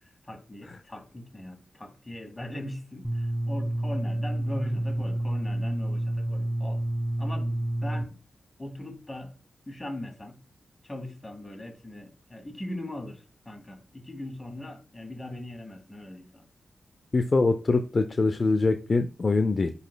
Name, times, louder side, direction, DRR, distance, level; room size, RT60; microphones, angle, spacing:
voice 1, 0.0-6.8 7.2-8.2 8.6-9.3 9.7-10.3 10.8-16.5, left 1 dB, 20° left, 2.0 m, -40 dB
sound 1, 3.0-8.0, right 1 dB, 10° right, 1.2 m, -29 dB
voice 2, 17.1-19.7, left 3 dB, 45° left, 0.5 m, -23 dB
10.5 x 4.2 x 2.3 m
cardioid pair, 70°, 0 cm